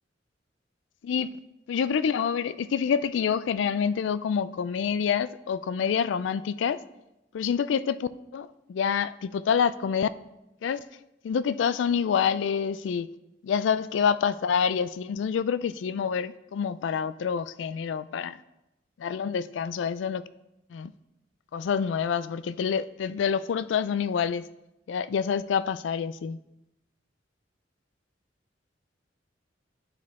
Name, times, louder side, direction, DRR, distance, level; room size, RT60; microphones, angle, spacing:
voice 1, 1.0-1.4 1.7-6.8 7.3-10.1 10.6-10.8 11.2-13.1 13.4-18.4 19.0-20.2 20.7-20.9 21.5-24.4 24.9-26.4, left 7 dB, 75° left, 0.3 m, -27 dB
10.5 x 4.5 x 3.6 m
head